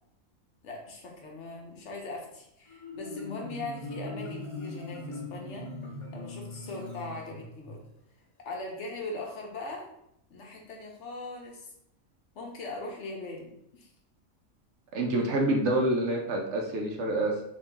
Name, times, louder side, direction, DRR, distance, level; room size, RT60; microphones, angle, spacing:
voice 1, 0.6-5.7 6.1-7.8 8.4-9.9 10.3-11.7 12.3-13.9, left 2 dB, 60° left, 0 dB, 1.0 m, -40 dB
Marimba xylophone, 2.7-7.8, left 2 dB, 25° left, 0.8 m, -40 dB
voice 2, 14.9-17.4, right 1 dB, 65° right, 1 dB, 0.8 m, -27 dB
3.0 x 2.8 x 3.3 m, 0.76 s
omnidirectional pair, 1.4 m